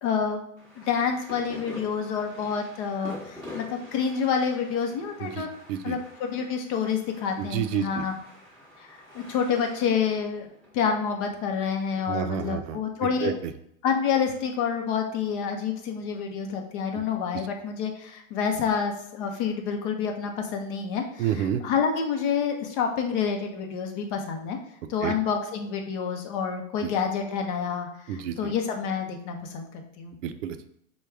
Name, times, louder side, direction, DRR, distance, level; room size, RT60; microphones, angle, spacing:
voice 1, 0.0-5.5 5.8-8.1 8.8-10.5 10.7-13.3 13.8-24.6 24.9-30.1, left 6 dB, 35° left, 4 dB, 0.7 m, -28 dB
sound 1, 0.6-12.0, left 1 dB, 5° left, 1.3 m, -46 dB
voice 2, 5.2-6.0 7.4-8.0 12.1-13.5 16.9-17.0 17.3-17.4 21.2-21.6 25.0-25.1 26.8-26.9 28.1-28.5 30.2-30.7, right 9 dB, 60° right, 9 dB, 0.6 m, -30 dB
4.6 x 2.3 x 3.4 m, 0.73 s
hypercardioid pair, 135°, 42 cm